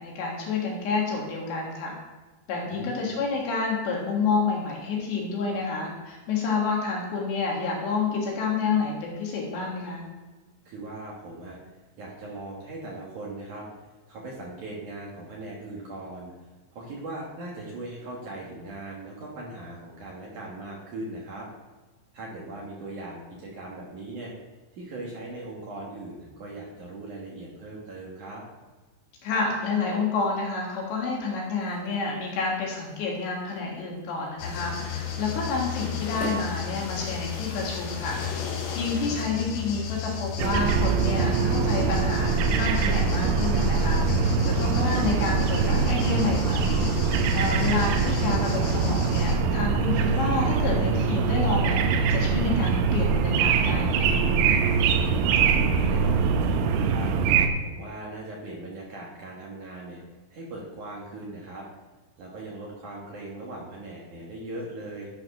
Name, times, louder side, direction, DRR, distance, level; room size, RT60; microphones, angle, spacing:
voice 1, 0.0-1.9 2.5-10.0 29.2-38.2 38.7-44.0 44.4-46.8 47.4-54.1, left 4 dB, 65° left, -2 dB, 3.9 m, -29 dB
voice 2, 2.7-3.1 10.7-11.6 12.0-13.7 14.1-16.3 16.7-21.5 22.1-24.3 24.7-28.4 38.9-39.2 54.9-60.0 60.3-61.7 62.2-65.1, right 2 dB, 60° right, -4 dB, 2.1 m, -39 dB
sound 1, 31.4-37.4, equal, 30° left, 1.7 m, -44 dB
sound 2, 34.4-49.4, left 8 dB, 85° left, 3.9 m, -33 dB
sound 3, 40.4-57.5, right 5 dB, 85° right, 3.1 m, -23 dB
10.5 x 4.8 x 6.0 m, 1.2 s
omnidirectional pair, 5.6 m